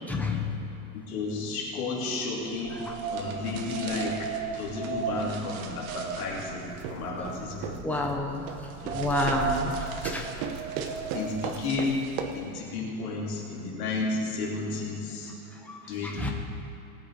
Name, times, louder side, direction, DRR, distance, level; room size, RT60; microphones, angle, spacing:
voice 1, 0.1-0.6 2.8-2.9 7.2-7.3 7.8-8.5 8.9-10.3 15.5-16.3, left 3 dB, 5° left, 1 dB, 0.4 m, -30 dB
voice 2, 0.9-2.8 3.1-4.3 4.5-7.8 8.8-9.1 11.1-12.0 12.3-15.3 15.9-16.3, left 3 dB, 80° left, -4 dB, 3.4 m, -32 dB
sound 1, 2.5-12.5, right 5 dB, 70° right, 1.5 m, -36 dB
sound 2, 6.6-12.5, right 7 dB, 40° right, 0.9 m, -37 dB
19.0 x 7.6 x 5.0 m, 2.9 s
supercardioid pair, 170°, 43 cm